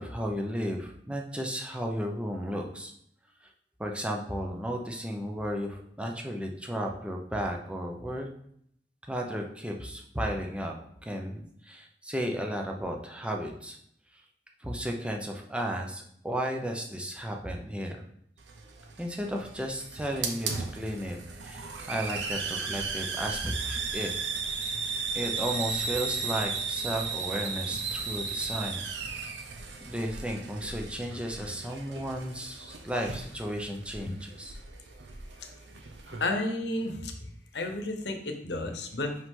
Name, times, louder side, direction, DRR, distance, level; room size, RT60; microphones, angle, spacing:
voice 1, 0.0-2.9 3.8-8.3 9.1-10.7 11.0-13.8 14.6-18.0 19.0-21.2 21.4-24.1 25.1-28.9 29.8-34.5, equal, 5° right, 1 dB, 0.7 m, -34 dB
Hiss, 18.4-36.3, right 5 dB, 80° right, 0.8 m, -36 dB
voice 2, 36.1-39.2, left 2 dB, 70° left, 4 dB, 1.0 m, -32 dB
5.5 x 5.5 x 3.8 m, 0.69 s
head